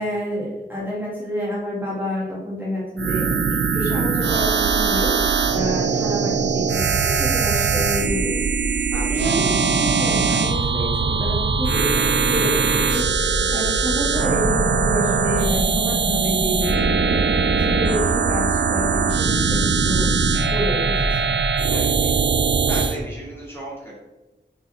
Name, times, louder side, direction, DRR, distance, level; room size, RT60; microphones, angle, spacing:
voice 1, 0.0-3.4 3.7-8.3 8.7-8.8 9.1-20.1 20.5-21.3, equal, 10° right, -7 dB, 2.1 m, -28 dB
sound 1, 3.0-23.0, right 5 dB, 75° right, 0.5 m, -21 dB
sound 2, 11.1-21.2, left 1 dB, 75° left, 1.4 m, -30 dB
voice 2, 21.6-22.2 22.7-23.9, right 1 dB, 15° left, -7 dB, 2.2 m, -34 dB
5.9 x 4.1 x 4.2 m, 1.0 s
wide cardioid pair, 90°, 18 cm